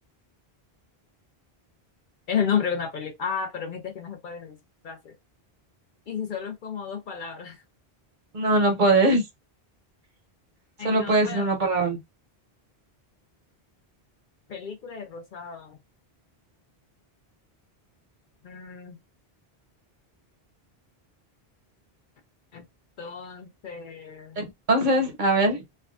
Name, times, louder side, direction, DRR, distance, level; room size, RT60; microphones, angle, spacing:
voice 1, 2.3-4.6 4.8-5.1 6.1-7.6 10.8-11.5 14.5-15.8 18.4-19.0 22.5-22.7 23.0-24.5, left 7 dB, 60° left, 0.7 m, -32 dB
voice 2, 8.3-9.2 10.8-12.0 24.4-25.6, right 2 dB, 50° right, 0.9 m, -21 dB
3.3 x 2.2 x 2.4 m
omnidirectional pair, 1.0 m